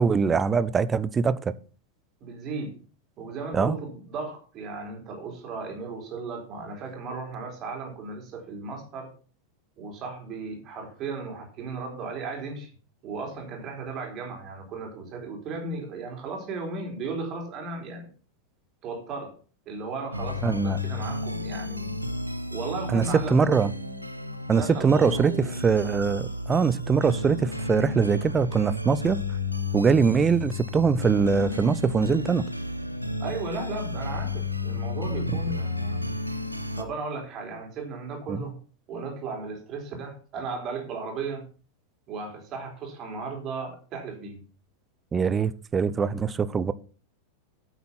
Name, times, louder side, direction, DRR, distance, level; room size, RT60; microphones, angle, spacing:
voice 1, 0.0-1.5 3.5-3.8 20.4-20.8 22.9-23.0 23.3-23.7 24.5-25.3 25.6-29.2 29.7-32.4 35.3-35.4 38.3-38.4 45.1-46.7, right 5 dB, 20° right, 0.6 m, -23 dB
voice 2, 2.2-2.8 3.2-9.1 9.8-12.7 13.0-18.1 18.8-19.4 19.7-22.0 22.5-23.6 24.5-25.5 33.2-36.0 36.7-38.6 38.9-41.4 42.1-44.4, right 4 dB, 35° right, 4.2 m, -35 dB
sound 1, 20.1-36.8, left 2 dB, 90° right, 1.2 m, -32 dB
9.5 x 8.0 x 5.9 m
figure-of-eight pair, 90°, 0 cm